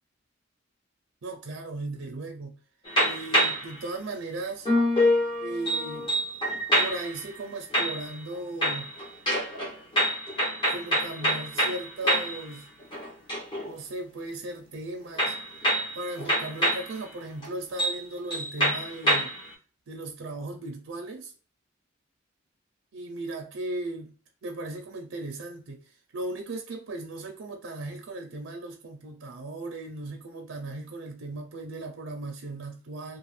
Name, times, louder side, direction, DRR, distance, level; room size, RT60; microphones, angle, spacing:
voice 1, 1.2-2.6 3.0-4.7 5.4-6.1 6.8-8.9 10.7-12.7 13.6-15.3 15.9-19.3 19.9-21.3 22.9-24.1 24.4-33.2, right 2 dB, 90° right, 0.5 m, -37 dB
sound 1, 2.8-3.7 4.6-7.2 7.7-8.3 8.6-12.4 12.8-13.7 15.2-16.9 17.4-17.5 17.8-18.0 18.3-19.5, equal, 25° left, 1.0 m, -26 dB
2.5 x 2.4 x 3.2 m
head